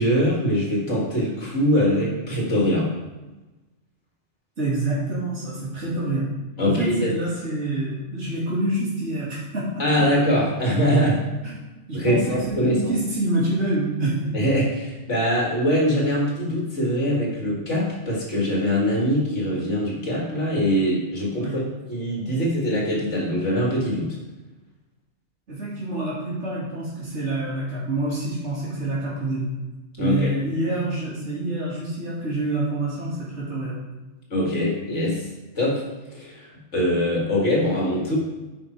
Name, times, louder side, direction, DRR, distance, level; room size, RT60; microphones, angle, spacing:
voice 1, 0.0-2.9 6.6-7.1 9.8-11.2 11.9-13.0 14.3-21.6 21.9-24.2 30.0-30.3 34.3-35.2 35.6-35.8 36.1-36.5 36.7-38.2, equal, 70° left, -3 dB, 2.7 m, -22 dB
voice 2, 4.6-6.2 6.6-10.1 11.4-11.5 11.9-14.3 21.4-21.6 25.5-29.5 30.0-33.7, right 2 dB, 70° right, -8 dB, 3.1 m, -27 dB
9.4 x 5.7 x 4.6 m, 1.1 s
omnidirectional pair, 1.3 m